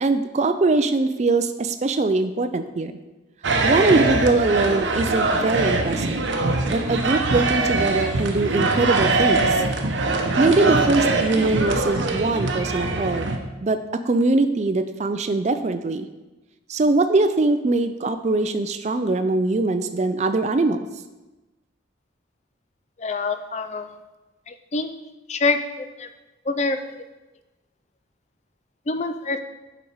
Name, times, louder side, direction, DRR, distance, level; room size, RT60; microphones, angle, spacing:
voice 1, 0.0-2.9 3.6-6.2 6.7-9.6 10.4-13.3 13.6-16.1 16.7-20.8, right 3 dB, 35° right, 9 dB, 0.4 m, -22 dB
sound 1, 3.4-13.4, right 3 dB, 75° right, 0.8 m, -22 dB
voice 2, 23.0-23.8 24.7-24.9 25.3-25.6 26.5-26.8 28.9-29.4, left 3 dB, 35° left, 9 dB, 0.4 m, -24 dB
7.0 x 5.1 x 4.7 m, 1.1 s
head